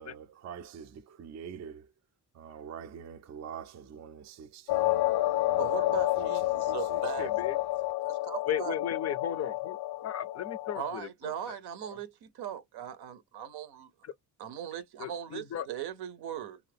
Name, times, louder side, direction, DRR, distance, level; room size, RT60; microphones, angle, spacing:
voice 1, 0.0-1.8 2.4-5.1 5.5-6.8, right 7 dB, 45° right, 0.4 m, -45 dB
sound 1, 4.7-10.9, left 16 dB, 85° left, 0.6 m, -30 dB
voice 2, 5.6-7.6 8.0-8.8 10.8-13.9 14.4-16.6, right 9 dB, 90° right, 0.7 m, -39 dB
voice 3, 7.2-7.6 8.5-11.3 14.0-14.1 15.0-15.7, left 9 dB, 45° left, 0.4 m, -36 dB
2.7 x 2.4 x 3.3 m
cardioid pair, 120°, 38 cm